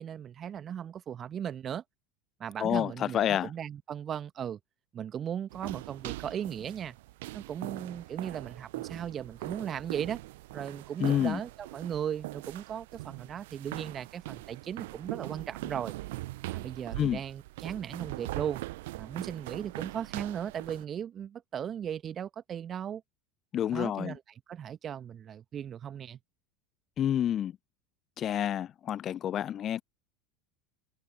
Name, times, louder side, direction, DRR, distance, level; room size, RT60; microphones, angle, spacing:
voice 1, 0.0-1.8 2.4-4.6 4.9-7.0 7.3-10.2 10.5-15.9 16.5-18.6 19.0-23.0 23.7-24.2 24.5-26.2, right 9 dB, 35° right, 1.6 m, -37 dB
voice 2, 2.6-3.5 11.0-11.4 17.0-17.2 23.5-24.1 27.0-27.5 28.2-29.8, left 10 dB, 35° left, 0.7 m, -28 dB
sound 1, 5.5-20.8, right 19 dB, 60° right, 0.8 m, -41 dB
figure-of-eight pair, 75°, 0 cm